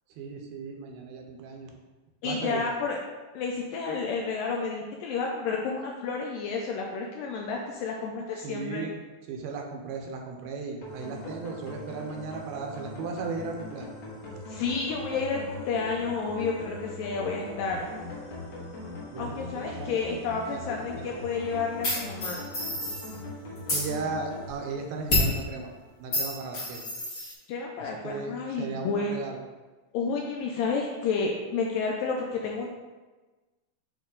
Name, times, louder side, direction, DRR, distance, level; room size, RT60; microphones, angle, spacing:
voice 1, 0.2-1.7 2.2-2.6 8.4-9.0 9.3-13.9 19.1-20.6 21.0-21.1 23.7-25.7 26.0-26.8 27.8-29.4, right 4 dB, 85° right, 2 dB, 2.5 m, -36 dB
voice 2, 2.2-3.0 3.3-8.9 14.5-17.9 19.2-22.5 27.5-29.1 29.9-32.7, left 4 dB, 80° left, 0 dB, 2.0 m, -30 dB
sound 1, 10.8-25.9, left 2 dB, 60° left, 2.1 m, -41 dB
sound 2, 21.8-23.2 23.6-23.9 25.1-25.4 26.1-27.3, left 1 dB, 35° left, 1.5 m, -28 dB
8.5 x 3.0 x 3.8 m, 1.2 s
omnidirectional pair, 4.4 m